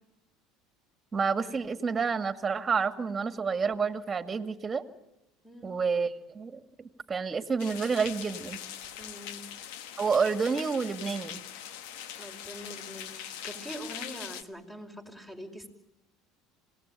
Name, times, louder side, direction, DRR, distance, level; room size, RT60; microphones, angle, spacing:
voice 1, 1.1-4.8 5.6-8.6 10.0-11.4, right 5 dB, 25° right, 9 dB, 2.2 m, -29 dB
sound 1, 7.6-14.4, left 10 dB, 75° left, 1.3 m, -42 dB
voice 2, 9.0-9.4 12.2-15.7, equal, 10° left, 6 dB, 5.4 m, -43 dB
27.0 x 18.5 x 9.1 m, 0.93 s
supercardioid pair, 95°, 0 cm